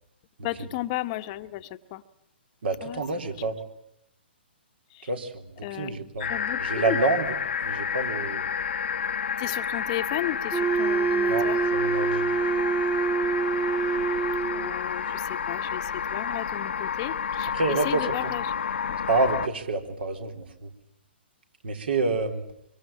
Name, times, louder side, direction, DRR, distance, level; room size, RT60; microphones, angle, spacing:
voice 1, 0.4-2.0 2.8-3.3 4.9-5.1 5.6-7.0 9.4-11.6 14.5-18.7, left 15 dB, 35° left, 9 dB, 1.0 m, -34 dB
voice 2, 2.6-3.6 5.1-6.3 6.6-7.3 7.6-8.4 11.3-12.3 17.5-18.1 19.1-20.7 21.6-22.4, right 3 dB, 65° right, 5 dB, 3.8 m, -28 dB
sound 1, 6.2-19.5, left 7 dB, 70° left, 0.9 m, -30 dB
Wind instrument woodwind instrument, 10.5-14.8, right 5 dB, 20° right, 1.6 m, -26 dB
24.5 x 24.5 x 8.6 m, 0.80 s
hypercardioid pair, 135°, 6 cm